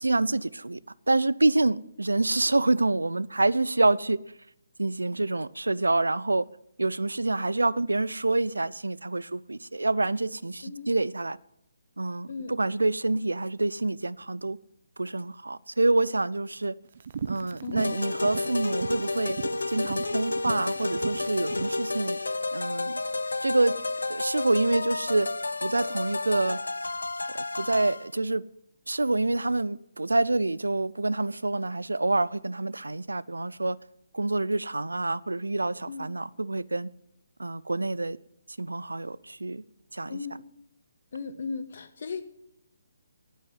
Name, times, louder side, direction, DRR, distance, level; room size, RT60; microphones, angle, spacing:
voice 1, 0.0-0.8 1.1-4.2 4.8-6.4 6.8-11.4 12.0-14.6 15.0-16.7 17.3-19.4 19.7-22.2 22.5-23.0 23.4-23.7 24.1-25.3 25.6-26.6 27.3-28.4 28.9-33.8 34.1-36.9 37.4-38.2 38.6-39.6 39.9-40.2, right 2 dB, 85° right, 0.5 m, -27 dB
sound 1, 17.0-21.8, right 7 dB, 50° right, 0.7 m, -37 dB
voice 2, 17.6-18.0 35.9-36.1 40.1-40.5 41.1-42.2, left 5 dB, 55° left, 1.5 m, -36 dB
sound 2, 17.8-28.1, left 3 dB, 80° left, 0.6 m, -31 dB
9.6 x 9.2 x 9.5 m
figure-of-eight pair, 145°, 0 cm